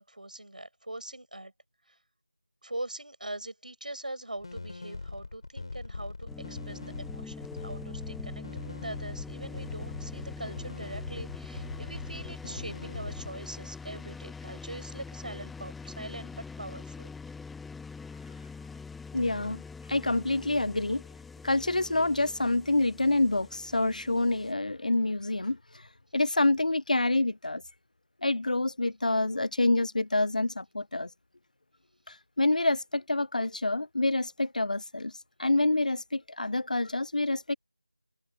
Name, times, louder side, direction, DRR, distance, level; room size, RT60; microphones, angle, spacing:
voice 1, 0.0-1.5 1.9-2.0 2.6-17.1, right 1 dB, 75° right, 6.2 m, -42 dB
sound 1, 4.4-13.3, left 3 dB, 40° left, 3.9 m, -41 dB
sound 2, 6.3-24.5, left 4 dB, ahead, 0.4 m, -44 dB
voice 2, 19.1-19.6 19.9-21.0 21.4-25.6 26.1-27.6 28.2-31.1 32.1-35.1 35.4-37.6, left 2 dB, 70° left, 0.4 m, -27 dB
figure-of-eight pair, 170°, 4 cm